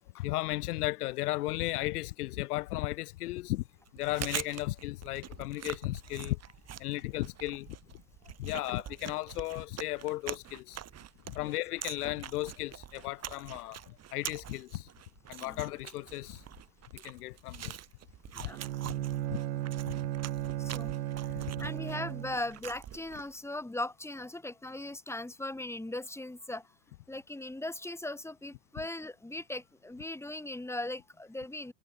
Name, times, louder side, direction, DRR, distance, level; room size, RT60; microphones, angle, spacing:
voice 1, 0.1-3.6 3.9-6.4 6.8-7.8 8.4-10.8 11.3-14.9 15.3-16.4 16.9-17.7 18.4-18.5 18.9-19.0 19.3-19.4 19.8-19.9 21.3-21.7, left 18 dB, 75° left, 1.4 m, -35 dB
Chewing mastication, 3.9-23.4, right 10 dB, 35° right, 2.5 m, -45 dB
Bowed string instrument, 18.5-22.6, right 14 dB, 90° right, 0.8 m, -35 dB
voice 2, 20.6-20.9 21.6-26.7 27.1-31.7, left 2 dB, 5° left, 4.1 m, -39 dB
hypercardioid pair, 95°, 46 cm